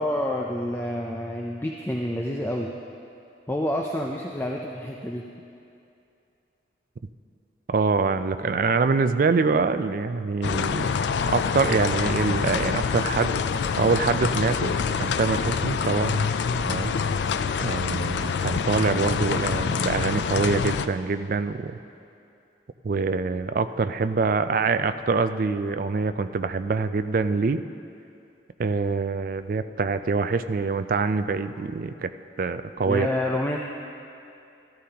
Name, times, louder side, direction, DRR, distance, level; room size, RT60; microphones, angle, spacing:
voice 1, 0.0-2.7 3.5-5.2 32.9-33.6, left 1 dB, 10° left, 0 dB, 0.5 m, -28 dB
voice 2, 7.7-10.9 11.3-13.3 13.8-16.2 16.6-16.9 17.6-21.8 22.8-27.6 28.6-32.1 32.4-33.1, right 4 dB, 50° right, 11 dB, 0.4 m, -25 dB
sound 1, 10.4-20.9, left 6 dB, 70° left, 0.4 m, -26 dB
14.5 x 13.5 x 2.9 m, 2.7 s
head